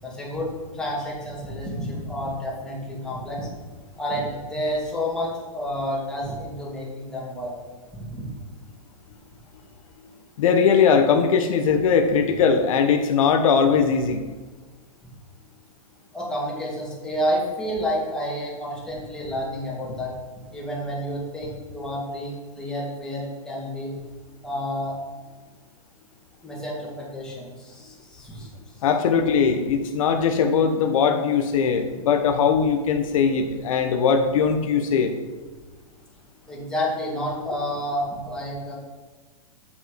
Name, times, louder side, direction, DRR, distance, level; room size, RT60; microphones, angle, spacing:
voice 1, 0.0-3.5 4.0-7.5 7.9-8.3 16.1-20.1 20.5-24.0 24.4-25.0 26.4-28.5 36.5-38.7, equal, 5° left, -6 dB, 2.3 m, -30 dB
voice 2, 10.4-14.2 28.8-35.1, left 6 dB, 65° left, 6 dB, 0.8 m, -20 dB
8.5 x 5.2 x 4.9 m, 1.3 s
hypercardioid pair, 145°, 19 cm